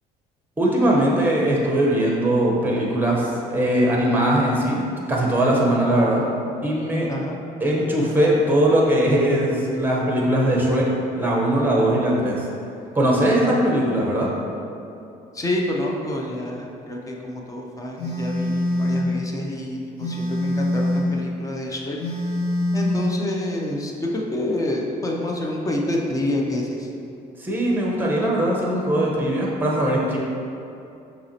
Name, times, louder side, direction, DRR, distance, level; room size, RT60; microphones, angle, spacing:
voice 1, 0.6-4.8 5.1-6.3 6.6-7.1 7.6-10.8 11.1-12.5 12.9-14.3 27.4-30.2, right 1 dB, 10° right, -3 dB, 0.9 m, -20 dB
voice 2, 15.4-19.8 20.1-22.0 22.7-26.6, left 1 dB, 20° left, -1 dB, 0.6 m, -27 dB
Telephone, 18.0-19.1 20.0-21.1 22.0-23.1, left 1 dB, 60° left, 1.1 m, -24 dB
6.0 x 2.9 x 2.8 m, 2.6 s
cardioid pair, 110°, 17 cm